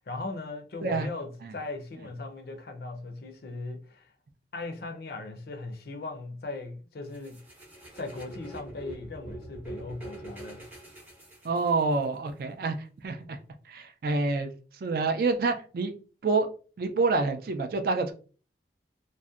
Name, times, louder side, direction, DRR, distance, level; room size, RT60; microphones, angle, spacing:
voice 1, 0.0-4.1 4.5-7.4 8.0-10.6, left 3 dB, 60° left, 0.4 m, -38 dB
sound 1, 7.1-12.0, right 1 dB, 10° right, 0.6 m, -44 dB
voice 2, 11.4-12.7 13.0-13.4 13.7-14.5 14.8-15.9 16.2-16.5 16.8-18.1, right 3 dB, 55° right, 0.3 m, -27 dB
2.6 x 2.1 x 2.3 m
head